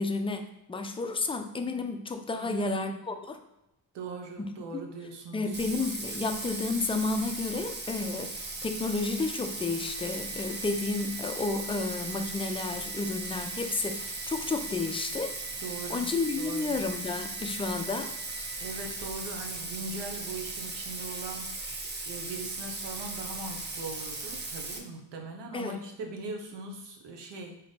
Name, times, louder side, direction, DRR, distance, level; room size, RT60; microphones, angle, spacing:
voice 1, 0.0-3.4 4.4-4.8 5.3-15.3 15.9-18.1 25.5-25.8, left 3 dB, 15° left, 6 dB, 0.4 m, -31 dB
voice 2, 2.3-2.9 3.9-5.6 15.6-16.1 16.4-16.8 18.6-21.5 22.1-27.5, right 2 dB, 70° right, 3 dB, 0.9 m, -40 dB
Bathtub (filling or washing), 5.5-24.8, right 3 dB, 25° right, 0.6 m, -38 dB
sound 1, 9.9-18.9, right 5 dB, 45° right, 1.1 m, -48 dB
3.9 x 2.9 x 3.3 m, 0.89 s
cardioid pair, 70°, 43 cm